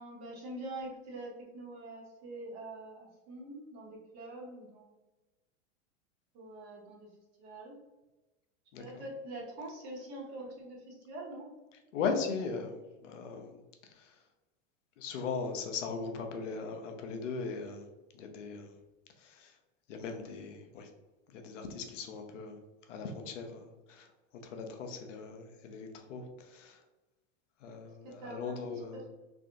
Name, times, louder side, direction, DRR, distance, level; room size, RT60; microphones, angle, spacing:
voice 1, 0.0-4.9 6.3-7.1 7.4-7.8 8.8-11.5 28.0-29.1, right 1 dB, 45° right, -2 dB, 1.2 m, -45 dB
voice 2, 8.7-9.0 11.9-13.6 13.9-14.1 15.0-17.9 18.1-18.7 19.2-19.5 19.9-20.9 21.3-22.6 22.9-24.1 24.4-26.8 27.6-29.1, left 5 dB, 85° left, 5 dB, 0.7 m, -39 dB
3.5 x 2.5 x 2.5 m, 1.1 s
hypercardioid pair, 110°, 37 cm